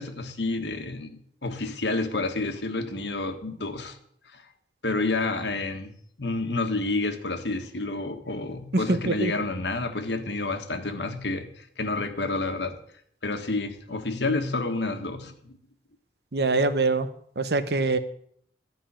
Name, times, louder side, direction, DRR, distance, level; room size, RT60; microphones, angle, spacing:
voice 1, 0.0-4.0 4.3-4.4 4.8-5.9 6.2-12.8 13.2-15.6, left 3 dB, 85° left, 1.5 m, -29 dB
voice 2, 8.7-9.3 16.3-17.1 17.4-18.0, right 3 dB, 70° right, 1.0 m, -24 dB
12.5 x 5.5 x 8.8 m
head